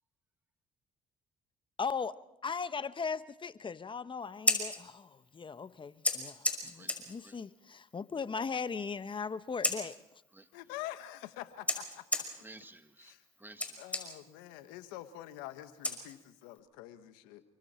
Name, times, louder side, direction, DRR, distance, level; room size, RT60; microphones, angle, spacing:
voice 1, 1.8-2.1 2.4-10.0, left 5 dB, 35° left, 1.0 m, -38 dB
Scissors, 4.2-16.6, left 1 dB, 10° left, 5.7 m, -38 dB
voice 2, 10.5-12.0 13.0-13.2 13.8-17.4, left 14 dB, 90° left, 1.5 m, -46 dB
voice 3, 12.4-14.1, right 2 dB, 15° right, 2.0 m, -54 dB
29.5 x 24.0 x 4.4 m
supercardioid pair, 70°, 15 cm